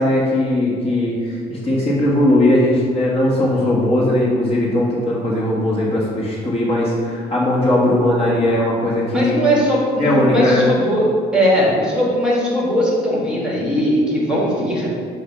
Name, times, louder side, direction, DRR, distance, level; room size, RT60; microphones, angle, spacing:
voice 1, 0.0-9.5 10.0-10.7, left 1 dB, 35° left, -5 dB, 1.5 m, -18 dB
voice 2, 9.1-11.1 11.3-14.9, equal, 5° right, -5 dB, 1.7 m, -19 dB
7.4 x 2.7 x 5.7 m, 2.1 s
cardioid pair, 110°, 17 cm